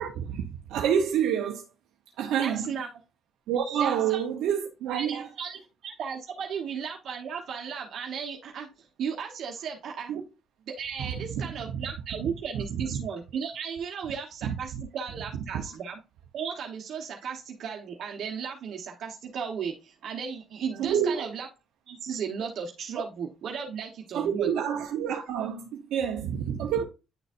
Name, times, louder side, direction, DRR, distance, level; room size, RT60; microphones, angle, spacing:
voice 1, 0.0-1.7 2.2-2.7 3.5-5.3 10.1-10.2 11.0-11.4 11.7-11.9 12.2-13.0 14.4-14.8 15.3-15.4 20.8-21.3 24.1-26.8, right 8 dB, 90° right, 0.8 m, -28 dB
voice 2, 2.4-2.9 3.8-4.2 4.9-10.1 10.7-16.0 16.3-21.5 21.9-24.5, right 6 dB, 70° right, 1.1 m, -35 dB
9.8 x 4.0 x 2.5 m
cardioid pair, 90°, 0 cm